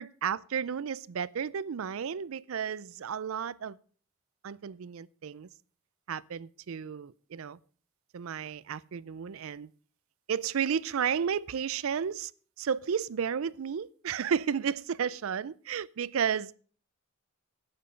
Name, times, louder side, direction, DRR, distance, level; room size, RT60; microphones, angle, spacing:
voice 1, 0.0-3.8 4.4-5.5 6.1-7.6 8.1-9.7 10.3-12.3 12.6-16.5, right 7 dB, 70° right, 0.4 m, -32 dB
11.5 x 9.0 x 5.1 m
head